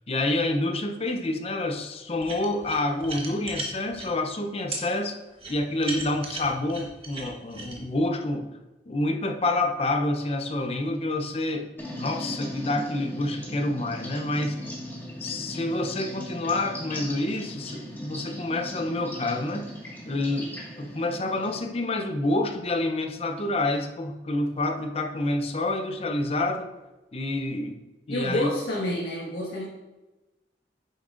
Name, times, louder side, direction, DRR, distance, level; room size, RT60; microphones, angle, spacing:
voice 1, 0.1-5.2 5.5-8.5 8.9-11.7 12.0-14.6 15.2-19.7 20.1-26.7 27.1-27.8 28.1-28.5, left 2 dB, 35° left, 4 dB, 0.6 m, -28 dB
sound 1, 2.2-4.1 4.7-4.8 5.4-7.8, right 2 dB, 35° right, 1.2 m, -36 dB
sound 2, 11.8-21.6, equal, 10° left, 1.7 m, -38 dB
voice 2, 28.1-29.7, left 1 dB, 70° left, -5 dB, 1.5 m, -28 dB
9.1 x 7.4 x 2.5 m, 1.1 s
head